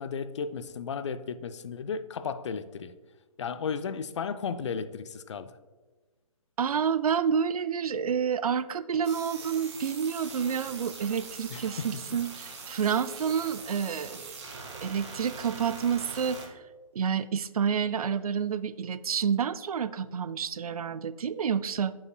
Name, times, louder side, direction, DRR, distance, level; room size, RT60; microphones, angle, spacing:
voice 1, 0.0-2.9 3.4-5.6 11.5-11.9, left 6 dB, 50° left, 0.4 m, -34 dB
voice 2, 6.6-14.4 14.8-16.4 16.9-21.9, right 7 dB, 80° right, 0.4 m, -29 dB
sound 1, 9.0-16.5, right 4 dB, 50° right, 1.6 m, -43 dB
9.0 x 5.5 x 2.2 m
hypercardioid pair, 150°, 19 cm